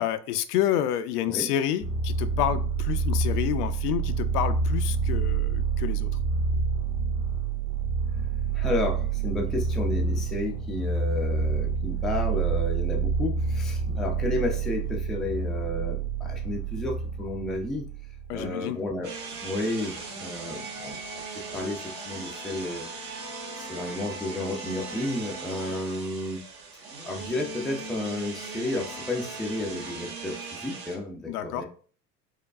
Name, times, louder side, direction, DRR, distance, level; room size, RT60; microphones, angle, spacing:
voice 1, 0.0-6.1 18.3-18.8 31.3-31.6, left 11 dB, 70° left, 11 dB, 0.5 m, -29 dB
sound 1, 1.8-18.5, right 5 dB, 85° right, 1.5 m, -28 dB
voice 2, 8.5-17.9 18.3-19.1 19.4-21.0 21.3-22.9 23.6-26.4 27.0-31.6, left 2 dB, ahead, 0 dB, 0.3 m, -32 dB
sound 2, 19.0-31.0, right 3 dB, 70° right, 1.5 m, -39 dB
4.7 x 2.2 x 2.4 m, 0.43 s
hypercardioid pair, 75°, 48 cm